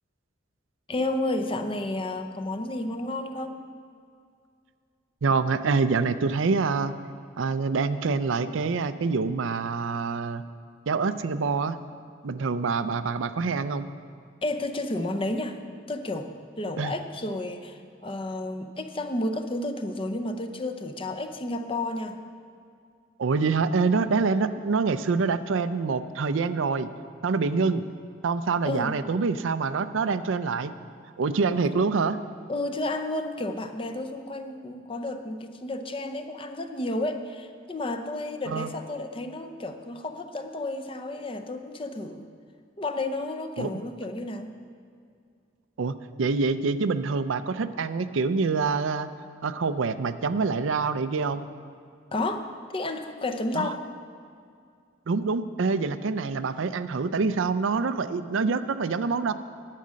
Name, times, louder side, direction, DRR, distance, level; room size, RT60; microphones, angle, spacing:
voice 1, 0.9-3.6 14.4-15.6 15.9-16.3 16.6-22.2 28.6-29.0 31.6-31.7 32.5-42.3 42.8-44.5 52.1-53.8, left 2 dB, 30° left, 7 dB, 0.6 m, -31 dB
voice 2, 5.2-7.0 7.4-10.4 10.9-11.8 12.2-13.9 16.8-16.9 23.2-26.9 27.2-27.8 28.2-30.7 31.2-32.2 38.5-38.7 43.6-43.7 45.8-49.1 49.4-51.4 53.5-53.7 55.1-59.3, right 4 dB, 85° right, 12 dB, 0.5 m, -26 dB
10.5 x 8.5 x 6.3 m, 2.3 s
head